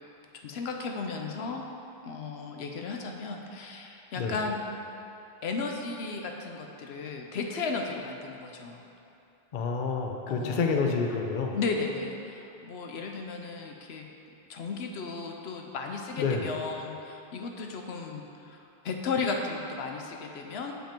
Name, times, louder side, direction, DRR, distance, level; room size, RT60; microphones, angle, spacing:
voice 1, 0.4-1.7 2.0-4.6 5.4-8.8 10.3-10.6 11.5-14.1 14.5-20.7, left 4 dB, 80° left, 2 dB, 0.9 m, -35 dB
voice 2, 9.5-11.6 16.2-16.5, left 4 dB, 55° left, 2 dB, 0.8 m, -28 dB
7.0 x 5.4 x 4.4 m, 2.8 s
omnidirectional pair, 1.1 m